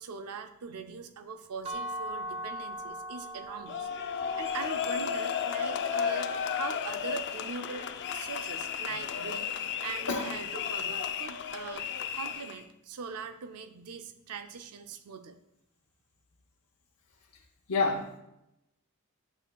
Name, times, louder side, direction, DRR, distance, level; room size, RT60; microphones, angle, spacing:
voice 1, 0.0-11.9 12.1-15.4, right 5 dB, 85° right, 9 dB, 0.5 m, -41 dB
sound 1, 1.6-7.5, right 1 dB, 25° right, 0.8 m, -42 dB
sound 2, 3.7-12.6, left 7 dB, 50° left, 0.4 m, -33 dB
voice 2, 17.7-18.2, left 3 dB, 80° left, -2 dB, 0.7 m, -28 dB
9.0 x 6.2 x 2.3 m, 0.85 s
head